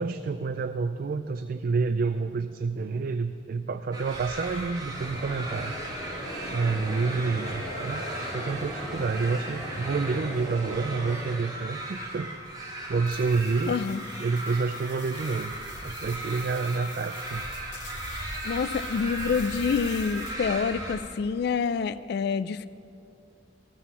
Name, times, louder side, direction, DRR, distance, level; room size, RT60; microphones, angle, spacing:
voice 1, 0.0-5.8 6.5-8.0 8.3-12.3 12.9-13.8 14.2-15.5 15.8-17.4, right 4 dB, 55° right, 10 dB, 0.4 m, -28 dB
sound 1, 3.9-21.0, right 1 dB, 20° right, 1.9 m, -37 dB
sound 2, 4.9-11.1, equal, 5° right, 2.3 m, -38 dB
sound 3, 13.0-20.6, left 9 dB, 75° left, 0.7 m, -48 dB
voice 2, 13.7-14.0 18.4-22.7, left 5 dB, 60° left, 15 dB, 0.3 m, -27 dB
14.0 x 7.6 x 7.1 m, 2.5 s
head